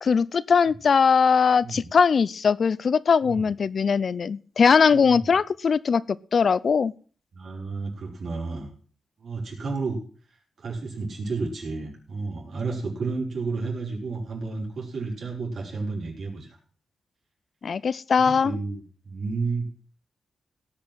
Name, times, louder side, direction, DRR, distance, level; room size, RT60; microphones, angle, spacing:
voice 1, 0.0-6.9 17.6-18.5, left 6 dB, 60° left, 20 dB, 0.5 m, -21 dB
voice 2, 4.9-5.3 7.3-8.7 9.2-10.0 10.6-16.6 18.2-19.7, right 4 dB, 70° right, -3 dB, 5.0 m, -32 dB
17.5 x 6.2 x 6.1 m, 0.42 s
cardioid pair, 75°, 0 cm